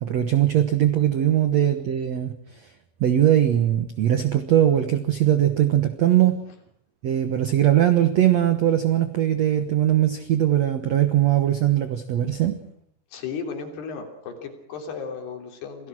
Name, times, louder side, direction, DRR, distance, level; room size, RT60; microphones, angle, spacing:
voice 1, 0.0-2.7 3.0-6.4 7.0-12.6, right 11 dB, 85° right, 9 dB, 1.5 m, -20 dB
voice 2, 13.1-15.9, left 5 dB, 70° left, 4 dB, 5.2 m, -34 dB
27.5 x 17.5 x 6.2 m, 0.69 s
omnidirectional pair, 5.0 m